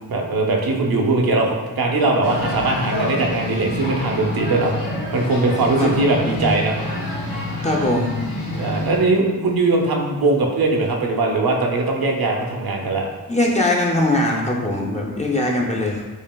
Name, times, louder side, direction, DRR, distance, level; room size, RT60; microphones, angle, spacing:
voice 1, 0.1-4.7 5.1-6.8 8.6-13.1, right 2 dB, 80° right, 1 dB, 0.6 m, -20 dB
sound 1, 2.2-9.0, left 1 dB, 70° left, 1.5 m, -27 dB
voice 2, 7.6-8.1 13.3-16.0, left 1 dB, 20° left, -2 dB, 0.5 m, -21 dB
5.0 x 2.8 x 2.2 m, 1.2 s
wide cardioid pair, 120°, 35 cm